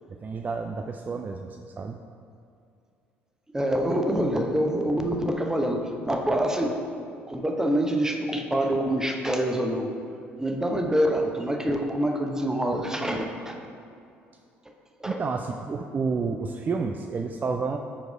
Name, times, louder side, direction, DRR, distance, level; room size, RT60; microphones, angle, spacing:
voice 1, 0.1-2.0 15.0-17.8, right 4 dB, 30° right, 5 dB, 0.4 m, -30 dB
voice 2, 3.5-6.7 7.3-9.9 10.4-13.6 15.0-15.2, right 1 dB, 10° right, 2 dB, 0.9 m, -26 dB
7.2 x 4.7 x 5.0 m, 2.4 s
figure-of-eight pair, 55°, 6 cm